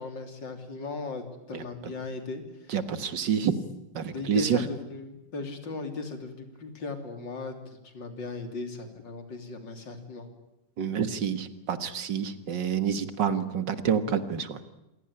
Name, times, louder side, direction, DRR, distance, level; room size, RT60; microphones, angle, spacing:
voice 1, 0.0-2.4 3.2-3.3 4.1-10.3, left 3 dB, 80° left, 7 dB, 3.7 m, -37 dB
voice 2, 2.7-3.5 4.0-4.6 10.8-14.6, right 8 dB, 75° right, 12 dB, 2.2 m, -28 dB
27.0 x 17.5 x 9.9 m, 0.93 s
omnidirectional pair, 2.0 m